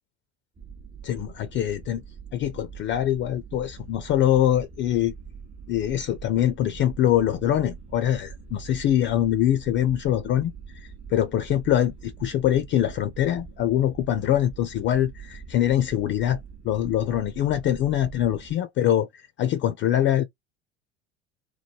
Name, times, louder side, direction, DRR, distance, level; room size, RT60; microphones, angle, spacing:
sound 1, 0.6-18.5, right 6 dB, 20° right, 0.6 m, -43 dB
voice 1, 1.0-2.0 2.3-5.1 5.7-16.4 16.6-20.2, left 11 dB, 35° left, 0.4 m, -24 dB
3.1 x 2.1 x 2.7 m
hypercardioid pair, 75°, 34 cm